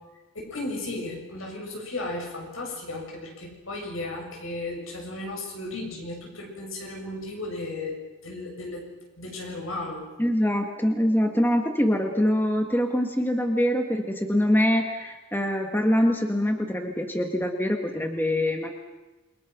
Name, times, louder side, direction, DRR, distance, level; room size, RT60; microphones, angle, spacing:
voice 1, 0.4-8.0 8.2-8.9 9.2-10.0, left 2 dB, 75° left, 1 dB, 7.2 m, -35 dB
voice 2, 10.2-18.7, equal, 10° left, 4 dB, 1.6 m, -24 dB
28.5 x 23.0 x 6.1 m, 1.1 s
head